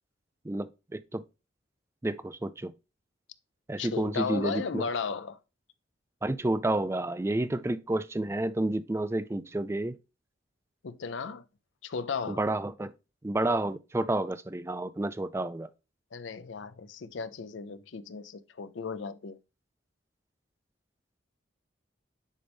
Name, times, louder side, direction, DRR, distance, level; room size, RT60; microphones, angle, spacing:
voice 1, 0.4-1.2 2.0-2.7 3.7-4.9 6.2-10.0 12.3-12.9 13.2-15.7, right 2 dB, 15° right, 0.3 m, -30 dB
voice 2, 3.8-5.4 10.8-11.4 11.8-12.5 16.1-19.4, left 5 dB, 80° left, 0.5 m, -35 dB
10.0 x 4.0 x 3.4 m
head